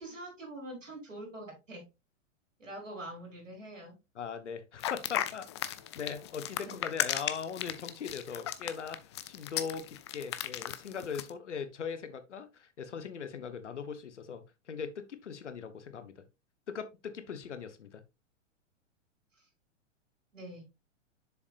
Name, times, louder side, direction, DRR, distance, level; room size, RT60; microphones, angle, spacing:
voice 1, 0.0-1.8 2.6-3.9 6.7-6.8 20.3-20.6, right 1 dB, 80° right, 4.5 m, -44 dB
voice 2, 4.1-16.2 16.7-18.0, left 6 dB, 65° left, 1.2 m, -40 dB
sound 1, 4.8-11.3, left 12 dB, 25° left, 0.3 m, -35 dB
7.0 x 6.9 x 2.5 m
figure-of-eight pair, 105°, 38 cm